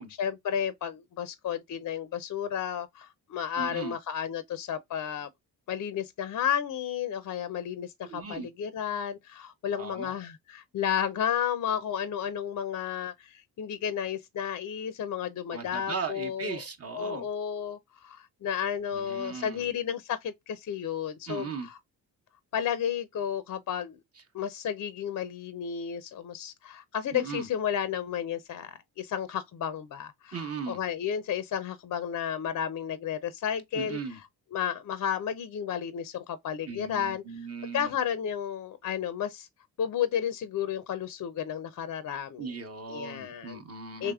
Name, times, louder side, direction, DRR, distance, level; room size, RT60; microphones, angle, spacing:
voice 1, 0.0-5.3 5.7-16.6 16.9-21.8 22.5-24.0 24.3-34.0 34.5-39.5 39.8-42.5 42.9-43.6 44.0-44.1, left 8 dB, 45° left, 0.5 m, -32 dB
voice 2, 3.6-3.9 8.0-8.5 9.8-10.1 15.5-17.3 18.9-19.7 21.3-21.7 27.1-27.5 30.3-30.8 33.7-34.2 36.7-37.9 42.4-44.1, right 5 dB, 35° right, 0.9 m, -37 dB
3.3 x 3.0 x 2.3 m
supercardioid pair, 60°, 42 cm